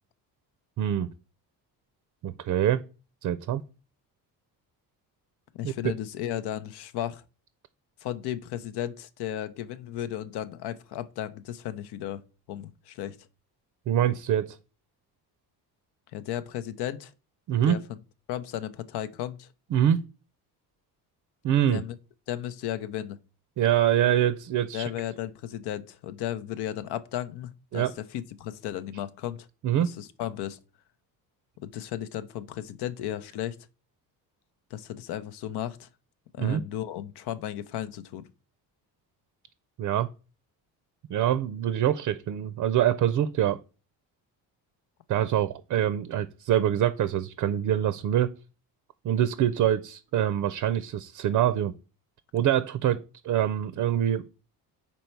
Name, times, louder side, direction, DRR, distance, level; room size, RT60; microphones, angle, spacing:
voice 1, 0.8-1.1 2.2-2.8 3.2-3.6 5.6-5.9 13.9-14.6 17.5-17.8 19.7-20.0 21.4-21.8 23.6-24.9 27.7-27.9 29.6-29.9 36.4-36.6 39.8-40.1 41.1-43.6 45.1-48.3 49.0-51.7 52.3-54.3, right 11 dB, 50° right, 0.5 m, -25 dB
voice 2, 5.5-7.2 8.0-12.2 12.5-13.2 16.1-17.1 17.7-18.0 18.3-19.5 21.7-21.9 22.3-23.2 24.7-29.5 29.8-30.6 31.6-33.6 34.7-35.9 36.3-38.2, left 11 dB, 85° left, 0.7 m, -34 dB
5.4 x 4.3 x 4.4 m
cardioid pair, 125°, 39 cm